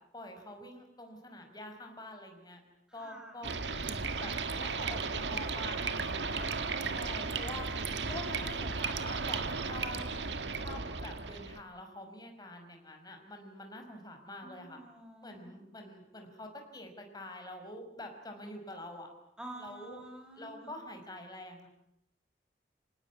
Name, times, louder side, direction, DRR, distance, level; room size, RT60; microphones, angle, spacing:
voice 1, 0.1-2.6 2.9-6.5 6.9-7.7 8.1-10.0 10.6-14.8 15.2-19.1 19.6-20.0 20.3-21.7, left 1 dB, 25° left, 4 dB, 5.5 m, -46 dB
voice 2, 2.9-3.4 14.4-15.5 19.4-20.7, right 1 dB, 5° right, 4 dB, 5.1 m, -49 dB
sound 1, 3.4-11.6, right 4 dB, 90° right, 1.7 m, -35 dB
26.0 x 18.5 x 9.6 m, 0.80 s
head